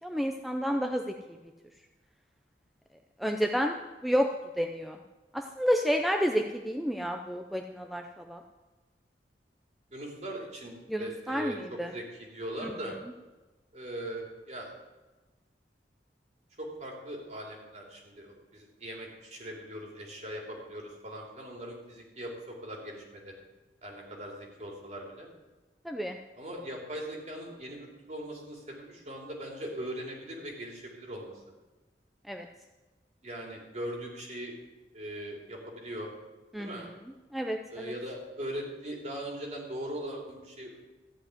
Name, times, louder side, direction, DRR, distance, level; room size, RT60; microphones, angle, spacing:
voice 1, 0.0-1.4 3.2-3.8 4.0-4.3 4.6-5.0 5.3-8.4 10.9-11.9 12.6-12.7 25.8-26.2 32.3-32.5 36.5-36.8 37.3-37.9, equal, ahead, 3 dB, 0.5 m, -30 dB
voice 2, 9.9-13.0 13.7-14.7 16.6-23.3 23.8-25.3 26.4-31.4 33.2-34.5 34.9-36.1 36.6-36.9 37.7-40.8, right 1 dB, 40° right, -1 dB, 3.0 m, -40 dB
14.0 x 5.3 x 9.5 m, 1.2 s
head